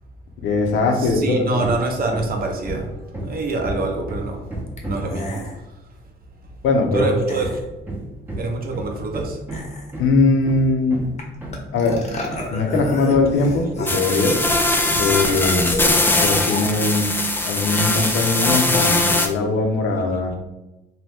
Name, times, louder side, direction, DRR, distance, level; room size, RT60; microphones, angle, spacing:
voice 1, 0.4-1.6 6.6-7.1 10.0-11.0 11.7-12.1 12.5-14.4 15.0-15.8 16.2-17.2 17.4-20.3, left 3 dB, 80° left, 3 dB, 0.6 m, -20 dB
Hammer, 1.0-1.3 1.6-5.2 6.9-13.9 14.4-16.3, right 1 dB, 10° right, 0.7 m, -33 dB
voice 2, 1.0-2.9 3.2-4.4 4.8-5.4 6.9-7.6 8.4-9.4, right 3 dB, 50° right, 2 dB, 0.6 m, -25 dB
sound 1, 3.4-3.5 4.8-4.9 5.1-5.6 7.2-7.6 9.5-10.1 11.2-11.3 11.5-14.6 15.2-18.9, left 1 dB, 35° left, 0.7 m, -33 dB
sound 2, 13.9-19.3, left 2 dB, 10° left, 0.3 m, -20 dB
2.7 x 2.2 x 3.3 m, 1.0 s
cardioid pair, 90°, 20 cm